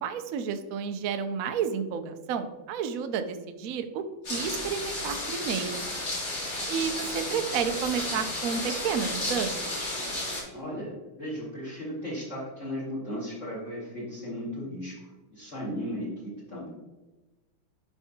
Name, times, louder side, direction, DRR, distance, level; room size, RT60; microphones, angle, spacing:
voice 1, 0.0-4.0 4.3-5.9 6.7-9.6, right 7 dB, 80° right, 8 dB, 0.7 m, -31 dB
sound 1, 4.2-10.4, left 1 dB, 55° left, 3.4 m, -33 dB
voice 2, 10.5-16.7, equal, 35° left, -6 dB, 2.2 m, -36 dB
12.0 x 4.6 x 2.8 m, 1.1 s
omnidirectional pair, 2.3 m